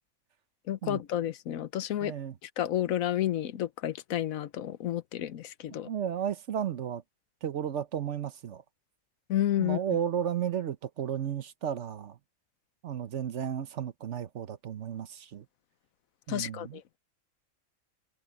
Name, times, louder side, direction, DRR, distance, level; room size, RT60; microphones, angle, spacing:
voice 1, 0.7-2.1 2.4-5.9 9.3-9.8 16.3-16.8, left 12 dB, 80° left, 1.2 m, -31 dB
voice 2, 2.0-2.3 5.8-7.0 7.4-8.6 9.6-12.2 12.8-15.4 16.3-16.8, right 9 dB, 60° right, 1.1 m, -33 dB
omnidirectional pair, 1.4 m